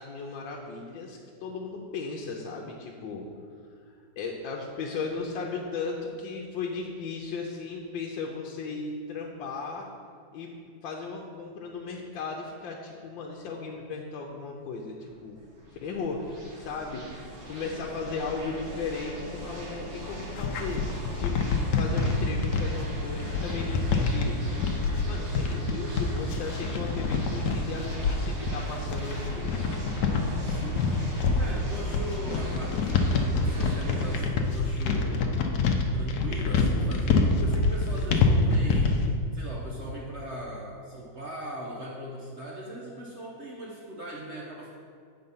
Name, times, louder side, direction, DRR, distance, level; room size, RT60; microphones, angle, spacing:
voice 1, 0.0-3.3 4.2-9.9 10.3-10.5 10.8-15.4 15.8-17.1 17.5-20.9 21.2-24.4 25.1-29.7, left 4 dB, 85° left, -1 dB, 1.4 m, -36 dB
sound 1, 15.1-34.2, equal, 65° right, 2.3 m, -40 dB
sound 2, 20.0-39.1, left 4 dB, 65° left, 1.1 m, -26 dB
voice 2, 30.4-31.0 31.2-35.3 35.9-39.0 39.3-44.8, equal, 50° right, -3 dB, 0.9 m, -39 dB
7.8 x 4.3 x 5.5 m, 2.2 s
omnidirectional pair, 2.0 m